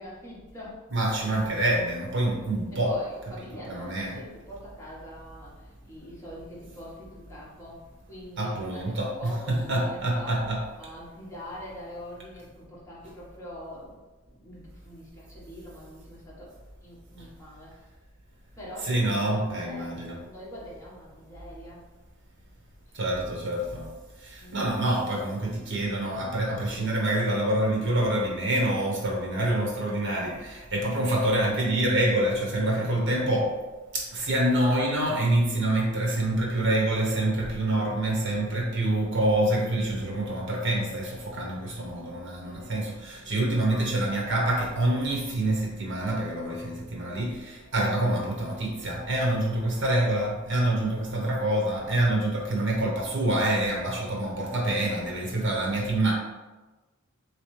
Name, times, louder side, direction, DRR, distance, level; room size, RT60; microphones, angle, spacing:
voice 1, 0.0-0.8 2.8-7.8 8.1-10.4 10.8-14.0 14.3-16.5 16.8-17.8 18.6-21.8 24.4-24.8 38.3-38.6 42.4-42.7 43.2-43.7 54.5-55.0, equal, 15° left, -8 dB, 1.2 m, -44 dB
voice 2, 0.9-2.9 3.5-4.2 8.4-10.6 18.8-20.2 22.9-23.9 24.2-33.5 33.9-56.1, right 1 dB, 60° right, -2 dB, 1.0 m, -26 dB
3.3 x 3.1 x 3.1 m, 1.2 s
head